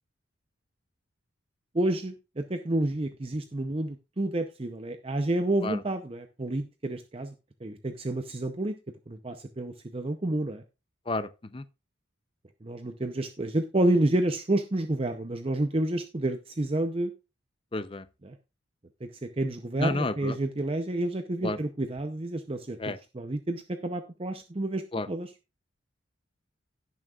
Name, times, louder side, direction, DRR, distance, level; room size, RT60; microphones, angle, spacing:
voice 1, 1.7-7.3 7.6-8.8 9.1-10.6 12.6-17.1 18.2-18.4 19.0-25.3, right 1 dB, 30° right, 0.6 m, -29 dB
voice 2, 17.7-18.0 19.8-20.3 21.4-21.6 22.8-23.0 24.9-25.1, left 2 dB, 25° left, 0.5 m, -30 dB
17.5 x 6.2 x 2.4 m
head